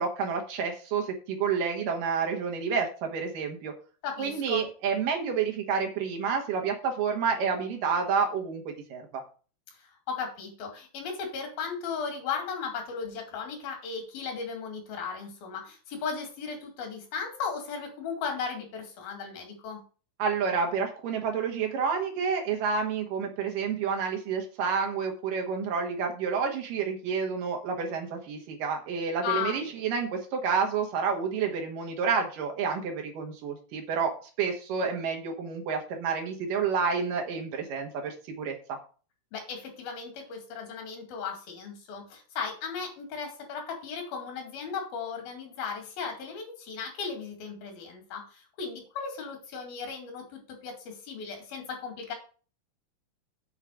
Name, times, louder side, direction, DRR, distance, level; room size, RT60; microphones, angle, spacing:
voice 1, 0.0-3.7 4.2-9.2 20.2-38.8, right 6 dB, 70° right, 2 dB, 2.9 m, -29 dB
voice 2, 4.0-4.7 9.8-19.8 29.2-29.6 39.3-52.1, left 6 dB, 90° left, 2 dB, 4.1 m, -36 dB
8.2 x 4.8 x 6.2 m, 0.38 s
omnidirectional pair, 4.1 m